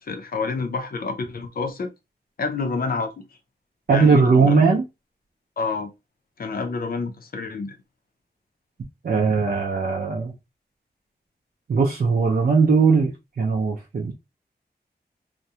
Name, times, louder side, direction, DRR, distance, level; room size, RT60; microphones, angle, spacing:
voice 1, 0.0-1.9 2.4-3.3 3.9-4.6 5.6-5.9 6.4-7.8, left 4 dB, 60° left, 0.5 m, -28 dB
voice 2, 3.9-4.8 9.0-10.3 11.7-14.1, right 4 dB, 60° right, 0.5 m, -19 dB
2.3 x 2.1 x 2.7 m
wide cardioid pair, 90°, 18 cm